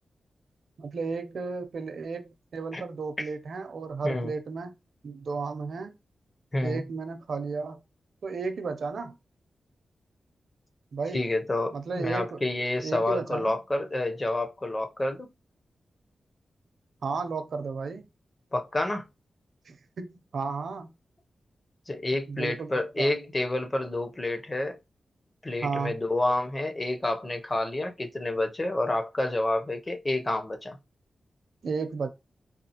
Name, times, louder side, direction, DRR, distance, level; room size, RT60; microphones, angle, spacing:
voice 1, 0.8-4.7 5.0-5.9 6.6-7.8 8.2-9.1 10.9-11.2 11.7-12.4 12.8-13.5 17.0-18.1 19.7-20.9 22.3-23.1 25.6-25.9 31.6-32.1, right 4 dB, 70° right, 0.5 m, -33 dB
voice 2, 6.5-6.8 11.1-15.3 18.5-19.1 21.9-24.8 25.4-30.8, left 2 dB, 25° left, 0.6 m, -29 dB
4.2 x 2.3 x 2.8 m
wide cardioid pair, 90°, 0 cm